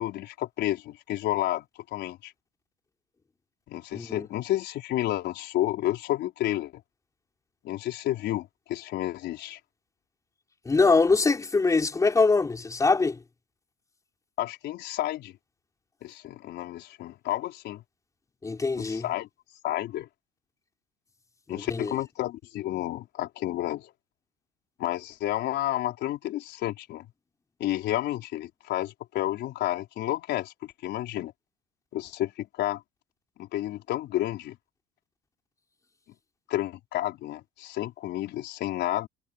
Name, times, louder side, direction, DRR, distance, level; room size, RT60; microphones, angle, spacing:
voice 1, 0.0-1.7 1.9-2.3 3.7-6.7 7.6-9.6 14.4-15.3 16.0-17.8 18.8-19.3 19.6-20.1 21.5-23.9 24.8-27.1 27.6-31.3 31.9-32.8 33.4-34.6 36.5-39.1, left 14 dB, 60° left, 4.8 m, -31 dB
voice 2, 3.9-4.3 10.7-13.2 18.4-19.0 21.5-22.0, left 4 dB, 15° left, 5.6 m, -23 dB
cardioid pair, 150°, 20 cm